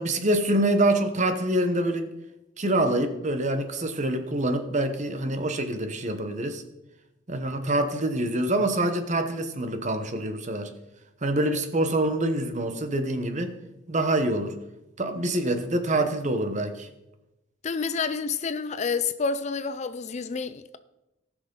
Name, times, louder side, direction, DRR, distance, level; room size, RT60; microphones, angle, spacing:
voice 1, 0.0-2.1 2.6-6.6 7.3-10.7 11.2-13.5 13.9-14.6 15.0-16.9, right 1 dB, 40° right, 1.0 m, -25 dB
voice 2, 17.6-20.8, left 5 dB, 35° left, 0.4 m, -29 dB
18.5 x 6.2 x 3.8 m
head